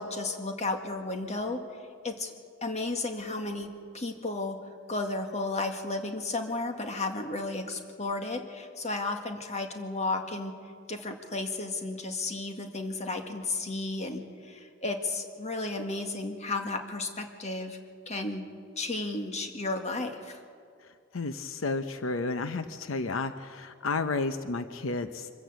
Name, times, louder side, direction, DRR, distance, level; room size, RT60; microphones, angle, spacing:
voice 1, 0.0-1.7 2.0-2.3 2.6-10.6 10.9-17.8 18.1-18.5 18.8-20.4, left 2 dB, 35° left, 4 dB, 2.0 m, -33 dB
voice 2, 21.1-25.3, left 3 dB, 85° left, 10 dB, 0.8 m, -32 dB
24.5 x 15.0 x 8.2 m, 2.2 s
head